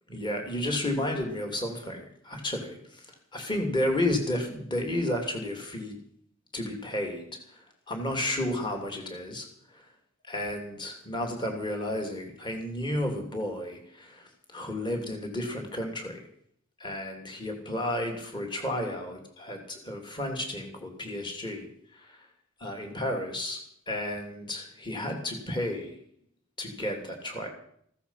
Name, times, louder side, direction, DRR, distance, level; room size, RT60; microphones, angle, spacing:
voice 1, 0.1-3.1 3.3-6.0 6.5-9.9 10.3-16.2 16.8-22.3 22.6-23.6 23.9-26.0 26.6-27.5, left 1 dB, 20° left, 3 dB, 2.9 m, -32 dB
15.5 x 14.5 x 5.7 m, 0.65 s
head